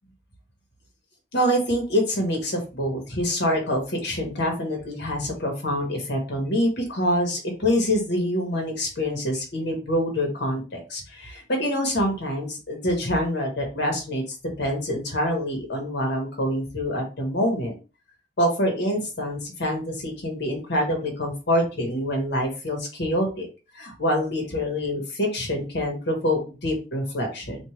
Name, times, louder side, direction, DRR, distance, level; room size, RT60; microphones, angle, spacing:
voice 1, 1.3-14.2 14.6-17.7 18.4-23.5 23.7-27.6, equal, 65° left, 2 dB, 1.6 m, -26 dB
4.4 x 2.6 x 3.2 m, 0.32 s
head